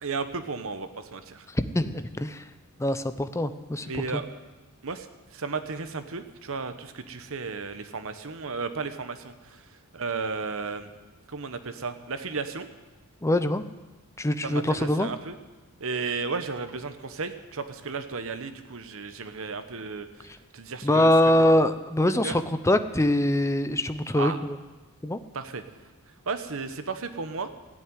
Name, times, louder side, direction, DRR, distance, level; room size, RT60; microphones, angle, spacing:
voice 1, 0.0-1.5 3.8-4.3 4.8-5.1 5.3-9.3 9.9-10.9 11.3-12.7 14.4-15.3 15.8-21.1 21.4-21.6 22.2-22.3 24.2-24.4 25.3-25.6 26.3-27.5, right 4 dB, 65° right, 9 dB, 1.1 m, -34 dB
voice 2, 1.5-2.4 2.8-4.2 13.2-13.6 14.2-15.1 20.8-24.6 25.0-25.2, left 1 dB, 15° left, 11 dB, 0.6 m, -24 dB
15.0 x 8.9 x 9.4 m, 1.2 s
head